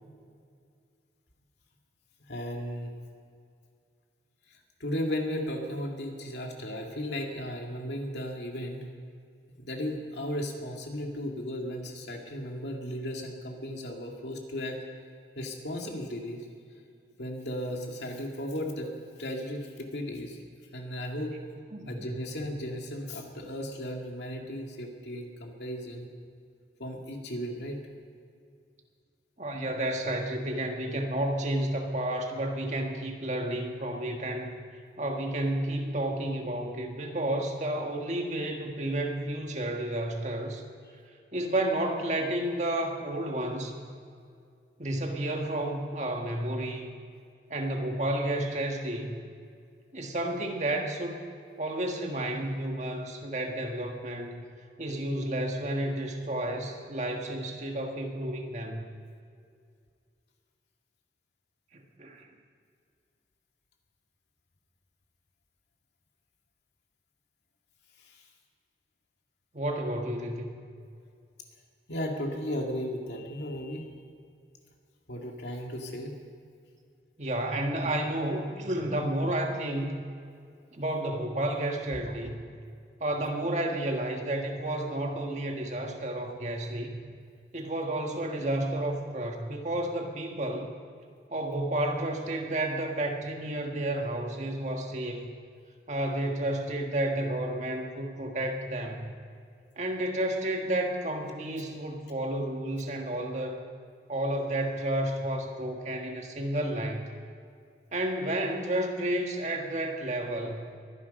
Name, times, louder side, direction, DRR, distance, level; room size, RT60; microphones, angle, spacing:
voice 1, 2.3-2.9 4.8-8.8 9.6-14.8 15.4-16.5 17.2-18.9 19.2-20.4 20.7-21.3 21.9-26.1 26.8-27.8 68.0-68.2 71.9-73.9 75.1-76.1 77.8-77.9 82.1-82.2, equal, 80° left, 1 dB, 2.4 m, -35 dB
voice 2, 29.4-34.5 35.0-40.6 41.3-43.8 44.8-46.9 47.5-49.2 49.9-51.2 51.6-54.4 54.8-58.8 61.7-62.3 69.5-70.7 77.2-80.0 80.7-82.5 83.0-87.0 87.5-90.7 91.3-95.3 95.9-99.1 99.8-103.6 104.1-107.0 107.9-110.6, right 1 dB, 40° right, 2 dB, 1.7 m, -31 dB
22.5 x 11.0 x 5.4 m, 2.3 s
head